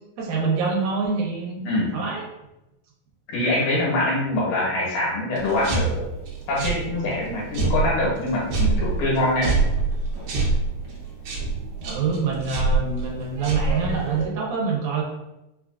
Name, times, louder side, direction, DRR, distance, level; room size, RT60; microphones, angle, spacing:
voice 1, 0.2-1.7 1.9-2.2 11.8-15.0, right 4 dB, 85° right, -2 dB, 2.2 m, -25 dB
voice 2, 3.3-6.1 6.5-9.6, left 1 dB, 80° left, -4 dB, 2.5 m, -24 dB
sound 1, 5.4-14.3, right 3 dB, 65° right, 1.9 m, -26 dB
5.3 x 2.4 x 2.4 m, 0.93 s
omnidirectional pair, 3.5 m